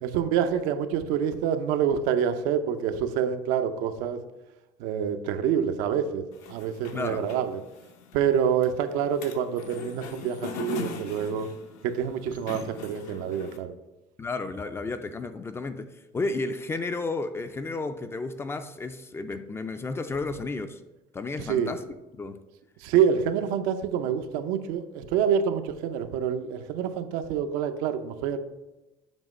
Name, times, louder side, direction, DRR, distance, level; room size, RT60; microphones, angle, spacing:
voice 1, 0.0-4.2 4.8-6.2 6.5-7.6 8.1-11.5 11.8-13.7 21.4-21.7 22.8-28.4, right 8 dB, 80° right, 0.6 m, -27 dB
sound 1, 6.3-13.6, left 4 dB, 75° left, 0.8 m, -40 dB
voice 2, 6.9-7.2 14.2-20.8 21.1-21.8 22.2-22.4, left 3 dB, 20° left, 0.3 m, -32 dB
7.2 x 3.0 x 5.3 m
cardioid pair, 125°, 14 cm